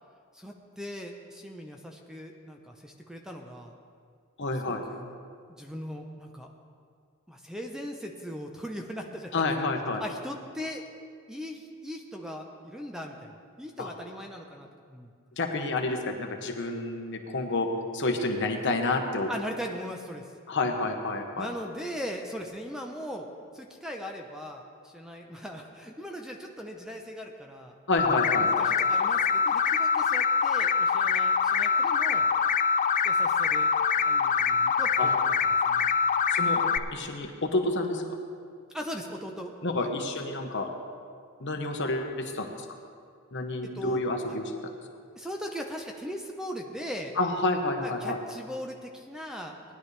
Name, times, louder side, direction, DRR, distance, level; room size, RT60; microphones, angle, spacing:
voice 1, 0.3-3.7 4.7-5.2 5.5-6.5 7.3-9.7 10.0-10.8 11.3-15.1 19.3-20.3 21.4-23.3 23.5-27.8 28.4-32.3 33.0-33.7 34.0-35.2 35.7-35.9 38.7-39.9 43.7-44.0 44.3-44.4 45.2-47.1 47.8-49.6, equal, 5° right, 2 dB, 0.7 m, -39 dB
voice 2, 4.4-4.8 9.3-10.0 13.8-13.9 15.4-17.7 17.9-19.3 20.5-21.5 27.9-28.5 35.0-35.1 36.3-36.6 36.9-38.1 39.6-40.7 41.4-42.5 43.3-44.4 47.2-48.2, left 2 dB, 55° left, 3 dB, 1.2 m, -29 dB
sound 1, 28.0-36.8, left 6 dB, 35° left, 0.4 m, -24 dB
19.0 x 11.0 x 3.3 m, 2.2 s
head